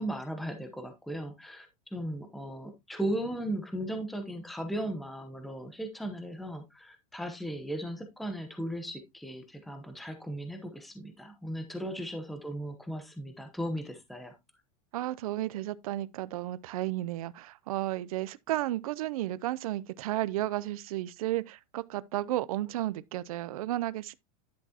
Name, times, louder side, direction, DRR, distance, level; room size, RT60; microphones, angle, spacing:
voice 1, 0.0-14.4, right 1 dB, ahead, 0.8 m, -37 dB
voice 2, 14.9-24.1, right 15 dB, 80° right, 0.5 m, -33 dB
10.5 x 6.0 x 2.8 m
supercardioid pair, 165°, 18 cm